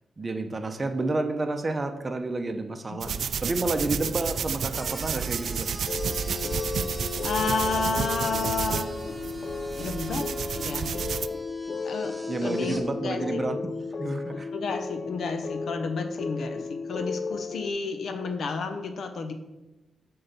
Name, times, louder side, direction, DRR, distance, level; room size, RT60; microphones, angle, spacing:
voice 1, 0.2-3.2 3.4-5.7 12.3-14.5, right 2 dB, 25° right, 7 dB, 0.7 m, -30 dB
voice 2, 2.9-3.2 7.2-8.9 9.7-10.3 10.6-11.0 11.8-13.4 14.5-19.3, left 4 dB, 70° left, 7 dB, 1.0 m, -31 dB
sound 1, 3.0-11.3, right 7 dB, 70° right, 0.3 m, -31 dB
sound 2, 4.7-12.8, equal, ahead, 1.0 m, -44 dB
sound 3, 5.9-17.7, left 4 dB, 40° left, 0.4 m, -34 dB
8.5 x 3.9 x 6.8 m, 1.0 s
wide cardioid pair, 125°, 0 cm